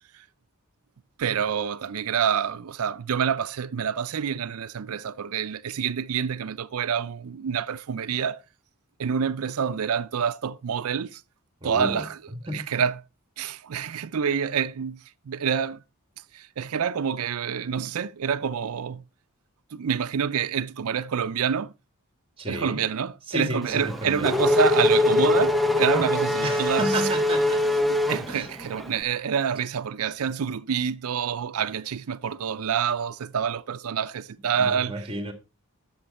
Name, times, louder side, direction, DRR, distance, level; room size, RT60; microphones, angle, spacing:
voice 1, 1.2-8.4 9.0-11.2 11.6-12.2 12.5-13.0 13.4-15.8 16.3-19.0 19.7-21.7 22.5-26.9 28.1-35.1, right 7 dB, 75° right, 0.5 m, -27 dB
voice 2, 11.6-12.1 12.3-12.7 22.4-22.8 23.3-24.3 26.4-27.6 28.3-28.5 34.6-35.3, right 1 dB, 25° right, 1.9 m, -31 dB
Race car auto racing / Accelerating revving vroom, 23.7-28.9, left 2 dB, ahead, 0.7 m, -23 dB
11.0 x 7.2 x 4.2 m
head